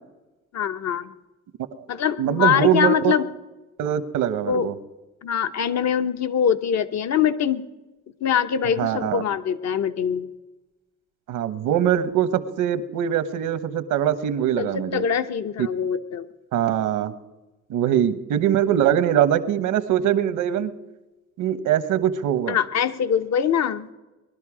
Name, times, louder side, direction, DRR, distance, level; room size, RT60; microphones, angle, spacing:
voice 1, 0.5-1.1 1.9-3.3 4.5-4.7 5.2-7.6 8.2-10.3 14.6-16.3 17.8-18.0 22.5-23.9, left 8 dB, 60° left, 11 dB, 0.9 m, -23 dB
voice 2, 2.2-3.1 3.8-4.7 8.8-9.2 11.3-15.0 15.6-15.7 16.5-17.1 17.7-20.7 21.4-22.6, right 10 dB, 85° right, 13 dB, 1.1 m, -22 dB
20.5 x 12.0 x 4.9 m, 1.1 s
cardioid pair, 90°, 30 cm